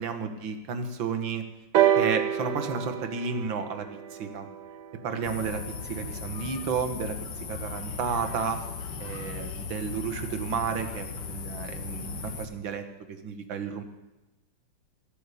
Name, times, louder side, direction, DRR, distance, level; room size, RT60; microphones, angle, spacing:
voice 1, 0.0-1.4 2.0-4.5 5.0-7.2 7.5-8.6 9.0-13.8, right 5 dB, 90° right, 7 dB, 2.1 m, -32 dB
sound 1, 1.7-5.6 6.5-6.6, right 10 dB, 70° right, 1.4 m, -27 dB
sound 2, 5.2-12.5, left 5 dB, 65° left, 1.8 m, -37 dB
13.5 x 8.4 x 8.4 m, 1.0 s
omnidirectional pair, 2.0 m